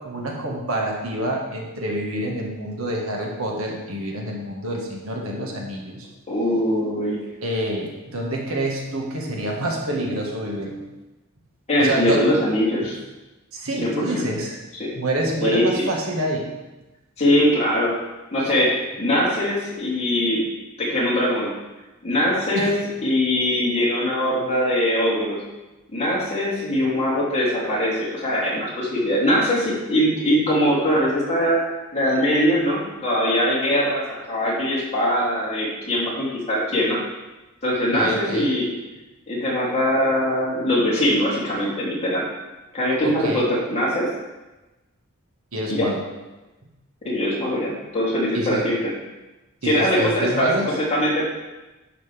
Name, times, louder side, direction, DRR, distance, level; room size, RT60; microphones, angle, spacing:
voice 1, 0.0-6.1 7.4-10.8 11.8-12.4 13.5-14.6 15.0-16.5 22.5-22.7 37.9-38.5 43.0-43.5 45.5-46.0 48.3-48.6 49.6-50.7, right 1 dB, 80° right, -1 dB, 1.7 m, -27 dB
voice 2, 6.3-7.2 11.7-12.9 13.8-14.2 14.7-14.9 15.4-15.9 17.2-17.9 18.3-20.4 20.8-21.5 22.0-25.4 25.9-31.6 31.9-37.0 37.6-38.7 39.3-42.2 42.7-44.1 45.7-45.9 47.0-48.9 49.6-51.3, equal, 30° left, -7 dB, 3.0 m, -22 dB
10.5 x 6.8 x 3.5 m, 1.1 s
head